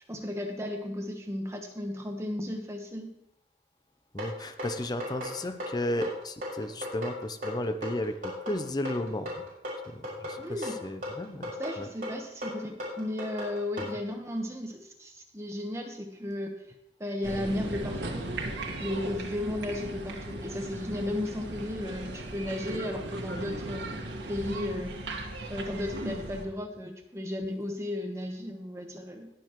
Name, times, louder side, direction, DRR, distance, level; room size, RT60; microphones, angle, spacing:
voice 1, 0.1-3.1 10.4-10.8 11.6-16.6 17.0-18.3 18.8-24.0 24.3-24.9 25.5-29.3, left 1 dB, 15° right, 3 dB, 1.2 m, -35 dB
voice 2, 4.1-9.4 9.9-11.9 13.8-13.9, left 1 dB, 25° left, 9 dB, 0.6 m, -34 dB
sound 1, 4.2-13.9, left 1 dB, 50° right, 4.6 m, -36 dB
sound 2, 17.2-26.5, right 1 dB, 85° right, 1.6 m, -37 dB
20.0 x 7.0 x 3.1 m, 0.79 s
head